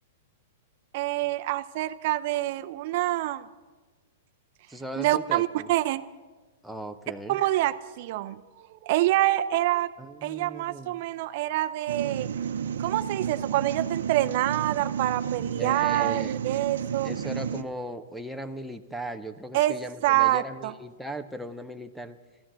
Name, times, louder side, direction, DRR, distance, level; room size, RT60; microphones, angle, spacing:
voice 1, 0.9-3.5 5.0-6.0 7.3-8.4 8.7-9.9 10.2-12.3 12.8-17.1 19.5-19.7 20.0-20.7, right 15 dB, 45° right, 11 dB, 0.6 m, -26 dB
voice 2, 4.7-5.7 6.6-7.4 10.0-11.0 15.6-16.3 17.0-22.2, right 1 dB, ahead, 4 dB, 0.6 m, -38 dB
sound 1, 11.9-17.6, right 8 dB, 85° right, 0.7 m, -31 dB
14.0 x 13.0 x 7.4 m, 1.3 s
hypercardioid pair, 160°, 0 cm